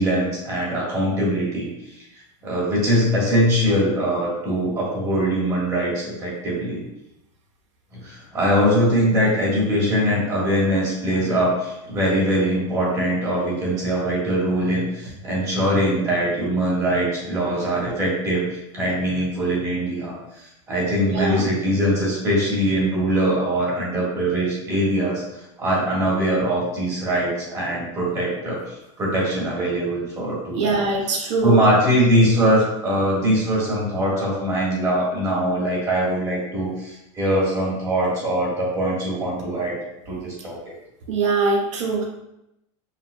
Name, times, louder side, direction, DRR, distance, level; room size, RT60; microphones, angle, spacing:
voice 1, 0.0-2.0 2.4-6.8 7.9-30.8 31.4-39.8 40.1-40.6, equal, 20° right, -6 dB, 1.5 m, -22 dB
voice 2, 21.0-21.5 30.5-31.6 41.1-42.0, right 3 dB, 85° right, -1 dB, 1.3 m, -22 dB
5.4 x 3.5 x 2.3 m, 0.86 s
supercardioid pair, 170°, 15 cm